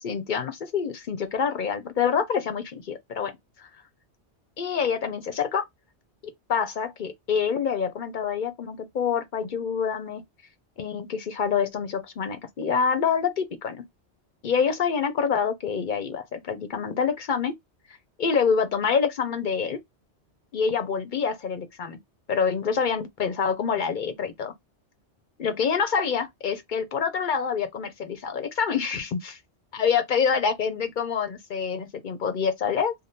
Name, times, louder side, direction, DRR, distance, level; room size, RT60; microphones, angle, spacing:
voice 1, 0.0-3.3 3.6-3.7 4.6-5.7 6.5-10.2 10.8-13.8 14.4-17.5 18.2-19.8 20.5-22.0 22.3-24.5 25.4-29.4 29.7-32.9, left 6 dB, 55° left, 0.6 m, -26 dB
3.4 x 2.1 x 2.6 m
omnidirectional pair, 1.1 m